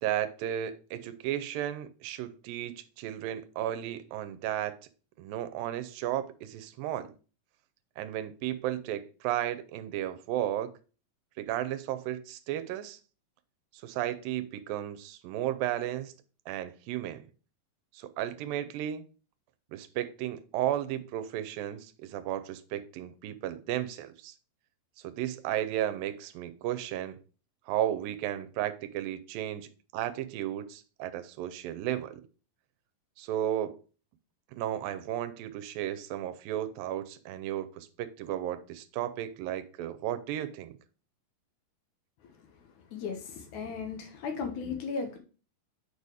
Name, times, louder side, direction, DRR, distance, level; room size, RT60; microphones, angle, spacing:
voice 1, 0.0-4.7 5.2-7.1 8.0-10.7 11.4-13.0 13.8-16.1 16.5-17.2 17.9-19.0 19.7-24.3 25.0-27.2 27.7-32.2 33.2-33.7 34.5-40.8, right 12 dB, 90° right, 2.4 m, -34 dB
voice 2, 42.9-45.2, left 5 dB, 65° left, 2.2 m, -36 dB
6.7 x 4.2 x 4.7 m
omnidirectional pair, 3.9 m